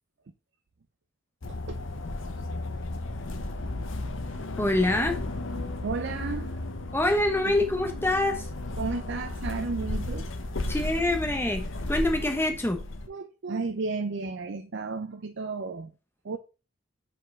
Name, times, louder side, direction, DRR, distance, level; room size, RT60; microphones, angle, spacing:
sound 1, 1.4-13.1, left 2 dB, 65° left, 0.8 m, -34 dB
voice 1, 1.4-1.8 5.0-5.1 5.8-6.6 7.3-7.6 8.8-10.3 10.9-11.0 13.1-15.9 16.2-16.4, right 4 dB, 60° right, 0.5 m, -33 dB
voice 2, 4.6-5.2 6.9-8.5 10.7-11.6 11.9-12.8, left 1 dB, 10° left, 0.9 m, -25 dB
5.1 x 4.3 x 5.4 m
head